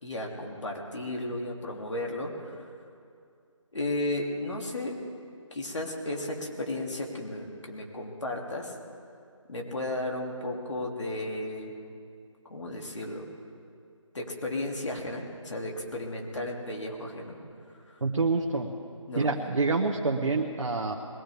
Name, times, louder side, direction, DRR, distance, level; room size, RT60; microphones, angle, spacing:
voice 1, 0.0-2.7 3.7-5.0 5.5-8.8 9.5-11.7 12.5-13.3 14.1-17.4 17.9-18.0 19.1-19.3, left 1 dB, 60° left, 0 dB, 2.7 m, -34 dB
voice 2, 18.0-18.7 19.1-20.9, right 3 dB, 65° right, 0 dB, 1.2 m, -27 dB
21.5 x 15.0 x 3.5 m, 2.4 s
figure-of-eight pair, 170°, 17 cm